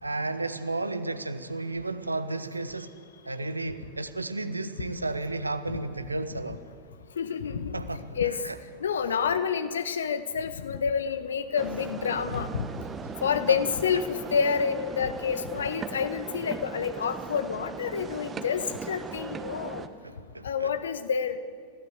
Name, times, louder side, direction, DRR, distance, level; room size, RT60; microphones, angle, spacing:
voice 1, 0.0-2.9 3.3-6.6 7.7-8.0 8.4-8.6 9.1-9.2 13.5-13.6 20.0-20.7, right 2 dB, 80° right, 11 dB, 1.2 m, -33 dB
voice 2, 7.2-7.8 8.1-8.4 8.8-12.7 13.2-19.9 20.4-21.4, left 7 dB, 65° left, 11 dB, 1.4 m, -28 dB
sound 1, 11.6-19.9, right 6 dB, 20° right, 1.4 m, -39 dB
30.0 x 16.5 x 8.2 m, 2.2 s
figure-of-eight pair, 90°, 0 cm